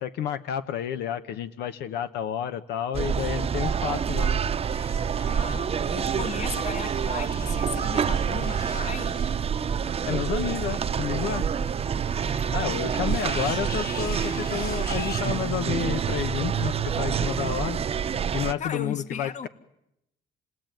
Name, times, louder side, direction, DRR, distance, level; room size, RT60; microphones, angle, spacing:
voice 1, 0.0-4.4 10.1-11.5 12.5-17.8 18.3-19.5, left 9 dB, 80° left, 1.1 m, -30 dB
sound 1, 2.9-18.5, right 7 dB, 35° right, 0.9 m, -27 dB
sound 2, 4.4-15.2, left 5 dB, 60° left, 4.1 m, -44 dB
voice 2, 5.2-9.2 18.6-19.5, left 7 dB, 45° left, 1.6 m, -36 dB
29.0 x 18.5 x 9.2 m
cardioid pair, 110°, 17 cm